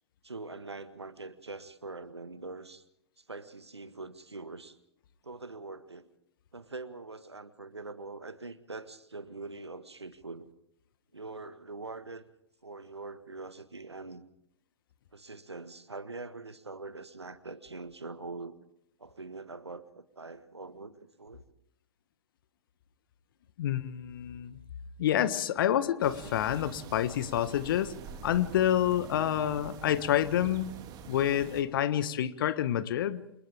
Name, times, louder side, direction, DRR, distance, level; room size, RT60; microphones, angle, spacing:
voice 1, 0.2-2.8 3.2-4.8 5.2-6.1 6.5-10.5 11.1-12.2 12.6-14.2 15.1-18.6 19.0-21.4, right 3 dB, 85° right, 12 dB, 1.6 m, -43 dB
voice 2, 23.6-24.6 25.0-27.9 28.2-30.8 31.1-33.2, left 11 dB, 55° left, 13 dB, 1.5 m, -28 dB
sound 1, 26.0-31.6, right 7 dB, 30° right, 2.9 m, -46 dB
30.0 x 27.5 x 3.6 m, 0.77 s
figure-of-eight pair, 110°, 14 cm